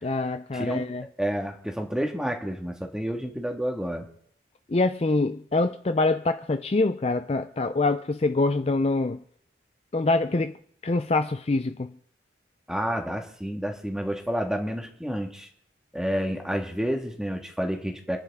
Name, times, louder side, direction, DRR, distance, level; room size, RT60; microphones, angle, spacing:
voice 1, 0.0-1.0 4.7-9.2 9.9-10.5 10.8-11.9, left 3 dB, 35° left, 0.4 m, -25 dB
voice 2, 0.5-0.9 1.2-4.1 12.7-15.5 15.9-18.2, equal, 5° right, 1.8 m, -29 dB
28.0 x 9.9 x 3.6 m
head